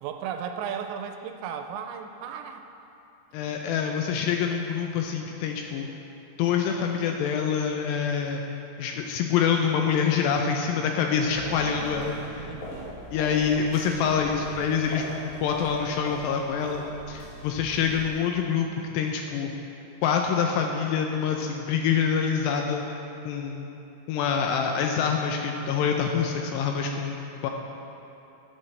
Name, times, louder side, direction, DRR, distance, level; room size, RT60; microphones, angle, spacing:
voice 1, 0.0-2.6 12.4-13.0, right 7 dB, 85° right, 6 dB, 2.7 m, -35 dB
voice 2, 3.3-5.9 6.4-8.4 8.8-12.5 13.1-15.1 15.4-18.7 18.9-19.5 20.0-22.8 23.3-23.7 24.1-27.5, left 7 dB, 80° left, 2 dB, 2.5 m, -26 dB
sound 1, 11.2-18.2, left 1 dB, 60° left, 2.2 m, -41 dB
13.5 x 8.9 x 3.3 m, 2.9 s
omnidirectional pair, 5.3 m